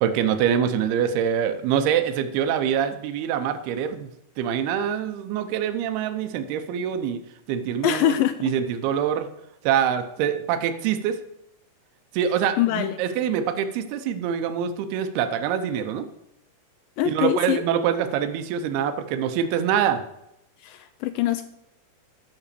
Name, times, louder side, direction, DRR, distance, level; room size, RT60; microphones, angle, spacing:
voice 1, 0.0-4.1 4.4-7.2 7.5-8.2 8.4-9.3 9.6-11.2 12.1-16.1 17.0-20.0, right 8 dB, 85° right, 9 dB, 2.8 m, -25 dB
voice 2, 7.8-8.5 12.6-13.0 17.0-17.6 20.6-21.4, left 12 dB, 85° left, 11 dB, 2.0 m, -23 dB
12.5 x 5.9 x 6.8 m, 0.84 s
omnidirectional pair, 4.5 m